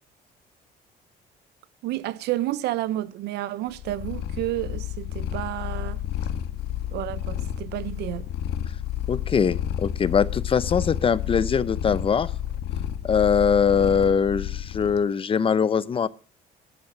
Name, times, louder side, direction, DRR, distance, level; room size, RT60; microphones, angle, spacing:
voice 1, 1.8-6.0 6.9-8.3, right 15 dB, 80° right, 0.9 m, -30 dB
Purr, 3.7-15.0, left 11 dB, 75° left, 1.6 m, -31 dB
voice 2, 9.1-12.3 13.0-16.1, left 6 dB, 35° left, 0.7 m, -22 dB
12.0 x 9.2 x 6.0 m
cardioid pair, 110°, 17 cm